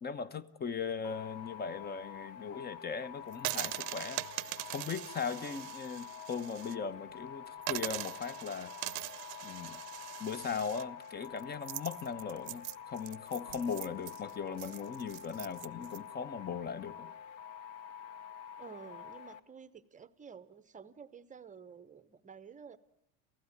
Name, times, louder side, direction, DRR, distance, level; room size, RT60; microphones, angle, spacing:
voice 1, 0.0-8.7 9.4-9.8 10.2-17.1, left 6 dB, 20° left, 0.9 m, -39 dB
sound 1, 1.0-19.4, left 8 dB, 85° left, 1.4 m, -48 dB
sound 2, 3.3-6.8 7.1-7.2 7.6-16.0, right 26 dB, 60° right, 0.8 m, -42 dB
voice 2, 18.6-22.8, right 6 dB, 15° right, 0.9 m, -51 dB
28.5 x 16.0 x 9.7 m
supercardioid pair, 125°, 50 cm